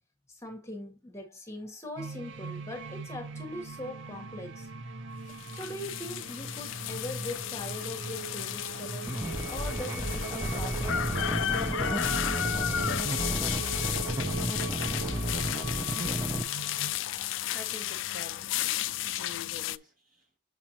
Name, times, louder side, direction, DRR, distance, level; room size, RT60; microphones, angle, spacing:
voice 1, 0.3-4.7 5.5-9.2 9.5-11.1 11.5-12.1, left 1 dB, 15° left, 1.2 m, -41 dB
sound 1, 2.0-16.9, right 4 dB, 70° right, 0.8 m, -40 dB
sound 2, 5.3-19.8, left 12 dB, 75° left, 0.3 m, -33 dB
sound 3, 9.1-16.4, right 1 dB, 15° right, 0.5 m, -32 dB
voice 2, 17.3-18.6 19.0-20.4, left 2 dB, 45° right, 1.8 m, -47 dB
7.0 x 5.1 x 2.9 m
head